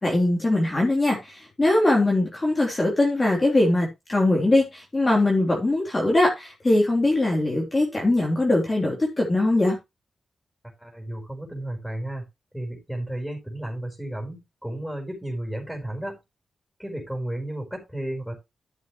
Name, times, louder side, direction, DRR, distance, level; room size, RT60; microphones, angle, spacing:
voice 1, 0.0-9.8, left 2 dB, 25° left, 3.5 m, -21 dB
voice 2, 10.8-12.2 12.5-16.1 16.8-18.3, right 1 dB, ahead, 4.9 m, -33 dB
13.0 x 7.3 x 3.1 m
cardioid pair, 90°, 0 cm